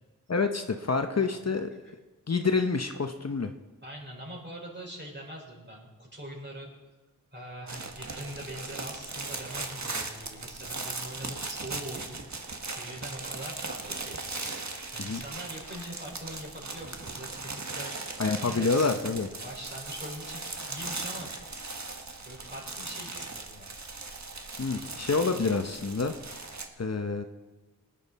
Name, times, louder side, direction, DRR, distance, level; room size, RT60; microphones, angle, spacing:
voice 1, 0.3-1.8 2.3-3.5 15.0-15.2 18.2-19.3 24.6-26.1 26.8-27.2, left 4 dB, 50° left, 6 dB, 0.8 m, -27 dB
voice 2, 3.8-6.7 7.3-12.5 12.8-14.2 14.6-18.0 18.4-18.9 19.4-20.4 20.7-21.3 22.2-23.7, equal, 35° right, -2 dB, 5.0 m, -43 dB
sound 1, 7.7-26.7, right 3 dB, 55° right, 1.4 m, -38 dB
19.5 x 10.0 x 4.2 m, 1.2 s
wide cardioid pair, 45°, 34 cm